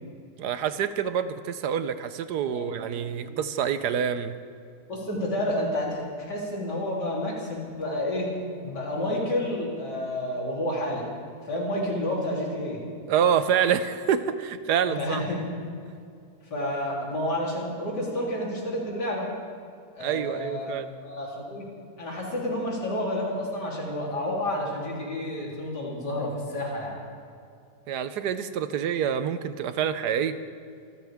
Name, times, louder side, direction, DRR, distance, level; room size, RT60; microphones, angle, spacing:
voice 1, 0.4-4.3 13.1-15.2 20.0-20.9 27.9-30.4, right 8 dB, 75° right, 12 dB, 1.3 m, -27 dB
voice 2, 4.9-8.3 8.6-11.0 11.4-12.8 14.8-15.4 16.5-19.3 19.9-20.7 21.0-21.7 22.0-27.0, left 1 dB, 80° left, -4 dB, 4.0 m, -30 dB
25.5 x 15.0 x 3.6 m, 2.4 s
omnidirectional pair, 1.8 m